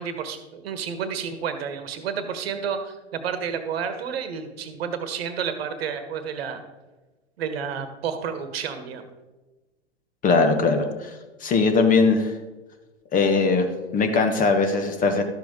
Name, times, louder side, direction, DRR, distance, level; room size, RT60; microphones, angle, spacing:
voice 1, 0.0-6.6 7.4-9.1, right 7 dB, 60° right, 9 dB, 1.3 m, -30 dB
voice 2, 10.2-11.1 11.4-12.3 13.1-15.2, left 4 dB, 25° left, 6 dB, 1.2 m, -20 dB
12.5 x 7.6 x 3.7 m, 1.2 s
figure-of-eight pair, 100°, 34 cm